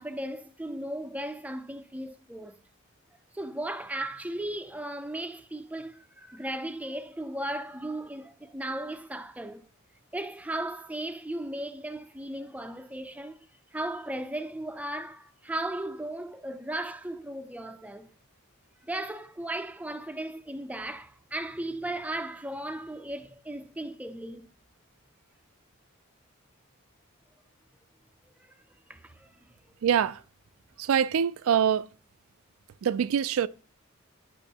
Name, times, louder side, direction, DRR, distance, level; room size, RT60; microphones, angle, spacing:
voice 1, 0.0-2.6 3.3-9.6 10.1-13.5 13.7-18.1 18.8-24.5 28.9-29.3, right 1 dB, 5° right, 0.4 m, -36 dB
voice 2, 29.8-30.2 30.8-31.9 32.8-33.5, right 8 dB, 70° right, 0.3 m, -24 dB
8.9 x 6.1 x 2.8 m
head